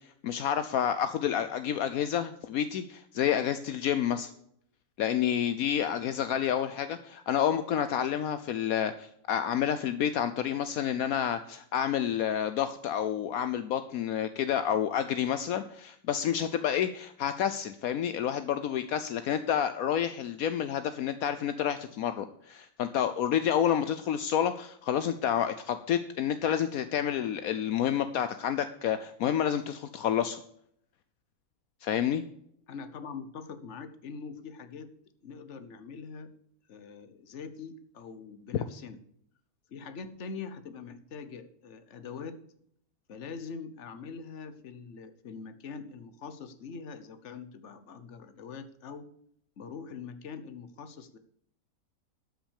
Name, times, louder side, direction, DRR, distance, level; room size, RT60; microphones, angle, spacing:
voice 1, 0.2-4.3 5.0-30.4 31.8-32.2, left 9 dB, 75° left, 10 dB, 1.1 m, -29 dB
voice 2, 32.7-34.9 35.2-36.3 36.7-39.0 39.7-42.4 43.1-49.1 49.6-51.2, left 5 dB, 55° left, 10 dB, 1.3 m, -43 dB
12.5 x 6.2 x 6.5 m, 0.69 s
omnidirectional pair, 1.6 m